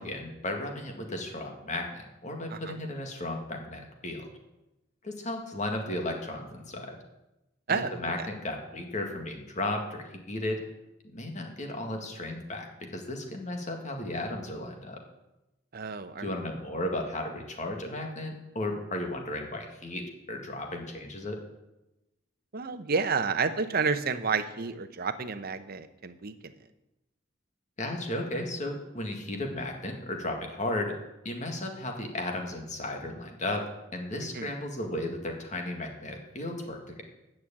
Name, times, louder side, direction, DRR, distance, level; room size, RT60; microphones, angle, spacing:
voice 1, 0.0-4.3 5.0-7.0 7.7-10.6 11.0-15.0 16.2-21.4 27.8-31.0 31.2-33.6 33.9-37.0, left 1 dB, 40° left, 3 dB, 1.8 m, -34 dB
voice 2, 15.7-16.3 22.5-26.3 34.3-34.5, right 5 dB, 50° right, 9 dB, 0.8 m, -30 dB
9.6 x 6.3 x 8.6 m, 0.96 s
head